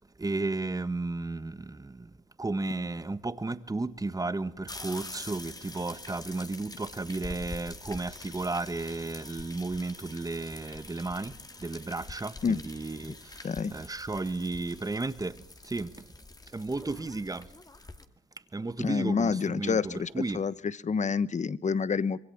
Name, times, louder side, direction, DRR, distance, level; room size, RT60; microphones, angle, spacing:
voice 1, 0.2-2.1 2.4-15.9 16.5-17.5 18.5-20.4, right 3 dB, 20° right, 1.5 m, -34 dB
sound 1, 4.7-18.0, left 2 dB, 20° left, 2.1 m, -46 dB
voice 2, 18.8-20.5 20.8-22.2, left 5 dB, 35° left, 1.1 m, -28 dB
26.0 x 23.0 x 7.3 m
cardioid pair, 90°, 20 cm